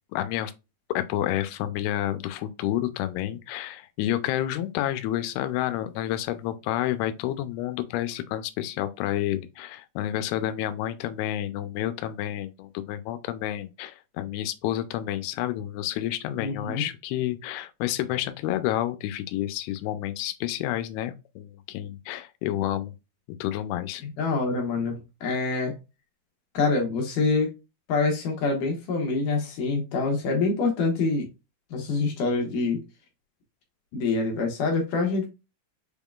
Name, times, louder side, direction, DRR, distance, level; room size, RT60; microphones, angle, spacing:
voice 1, 0.1-0.5 0.9-22.9 23.4-24.0, left 13 dB, 90° left, 2.6 m, -29 dB
voice 2, 16.4-16.8 24.0-25.0 25.2-25.7 26.5-27.5 27.9-31.3 31.7-32.8 33.9-35.3, left 3 dB, 70° left, 2.3 m, -25 dB
6.2 x 3.6 x 2.3 m
omnidirectional pair, 4.4 m